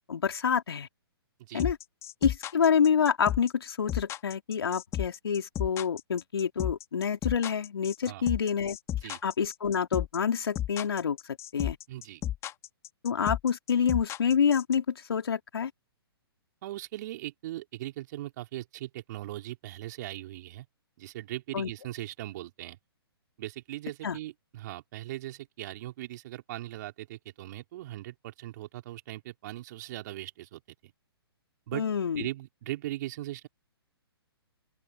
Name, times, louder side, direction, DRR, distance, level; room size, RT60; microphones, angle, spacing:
voice 1, 0.1-0.9 1.5-1.8 2.2-8.8 9.2-11.2 11.5-11.8 13.0-15.7 21.5-21.7 24.0-24.2 31.7-32.2, left 7 dB, 70° left, 3.2 m, -27 dB
sound 1, 1.6-14.8, left 12 dB, 20° left, 2.6 m, -33 dB
voice 2, 11.9-12.2 16.6-20.7 21.0-22.8 23.4-30.9 31.7-31.9 32.2-33.5, right 15 dB, 45° right, 4.2 m, -39 dB
open air
figure-of-eight pair, 125°, 13 cm